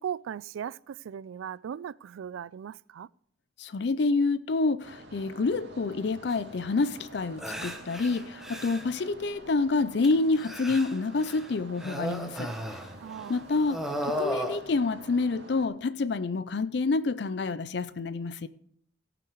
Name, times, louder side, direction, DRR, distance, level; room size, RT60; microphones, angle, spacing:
voice 1, 0.0-3.1 13.0-13.4, right 8 dB, 90° right, 0.3 m, -38 dB
voice 2, 3.6-12.5 13.3-18.5, left 3 dB, 60° left, 0.4 m, -28 dB
sound 1, 4.8-15.7, right 1 dB, 60° right, 2.1 m, -48 dB
sound 2, 6.3-6.4 6.9-7.0 7.4-9.0 10.0-11.5 11.8-13.4 13.6-14.6, equal, ahead, 0.9 m, -35 dB
17.0 x 5.9 x 4.7 m
head